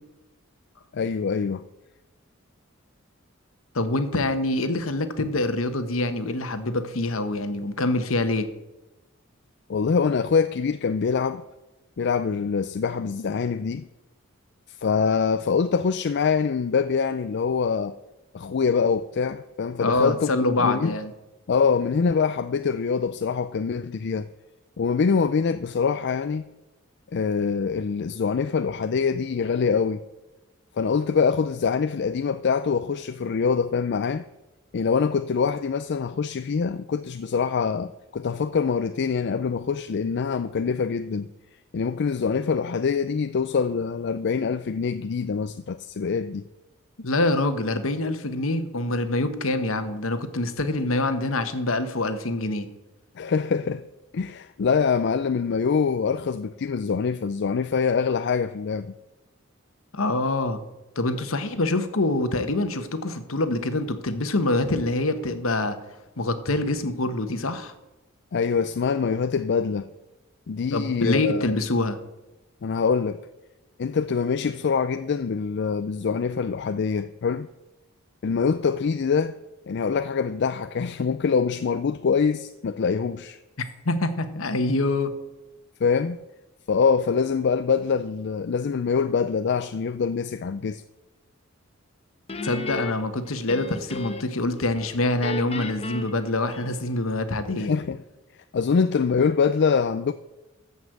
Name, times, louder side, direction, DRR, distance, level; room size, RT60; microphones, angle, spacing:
voice 1, 0.9-1.6 9.7-11.4 12.0-13.9 14.8-17.9 18.3-21.0 21.5-24.3 24.8-26.5 27.1-30.0 30.8-34.2 34.7-41.3 41.7-46.5 53.2-53.8 54.1-58.9 68.3-69.9 70.5-71.5 72.6-73.2 73.8-77.5 78.2-79.4 79.7-83.4 85.8-86.2 86.7-90.8 97.6-98.0 98.5-100.1, left 5 dB, 55° left, 0.4 m, -24 dB
voice 2, 3.7-8.5 19.8-21.1 47.0-52.7 59.9-60.6 61.0-65.8 66.2-67.7 70.7-72.0 83.8-85.1 92.4-97.7, left 2 dB, 75° left, 1.2 m, -25 dB
Guitar, 92.3-94.4 94.7-97.1, left 3 dB, 30° left, 1.0 m, -35 dB
14.0 x 5.4 x 7.9 m
head